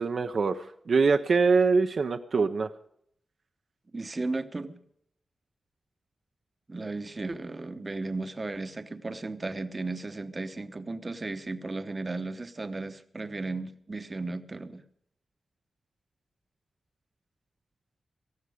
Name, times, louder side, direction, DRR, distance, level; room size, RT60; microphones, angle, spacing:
voice 1, 0.0-2.7, right 4 dB, 55° right, 7 dB, 0.6 m, -24 dB
voice 2, 3.9-4.8 6.7-14.8, right 3 dB, 30° right, 10 dB, 0.9 m, -35 dB
18.0 x 14.5 x 4.9 m, 0.71 s
wide cardioid pair, 150°, 0 cm